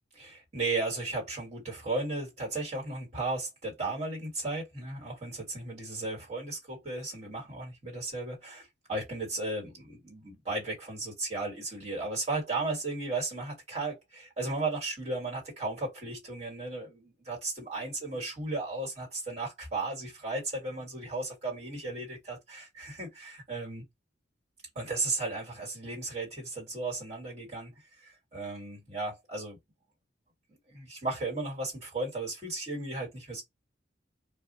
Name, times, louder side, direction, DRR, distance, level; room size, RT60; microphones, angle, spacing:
voice 1, 0.1-23.8 24.7-29.6 30.5-33.4, right 2 dB, 35° right, 1.5 m, -35 dB
2.3 x 2.1 x 3.9 m
head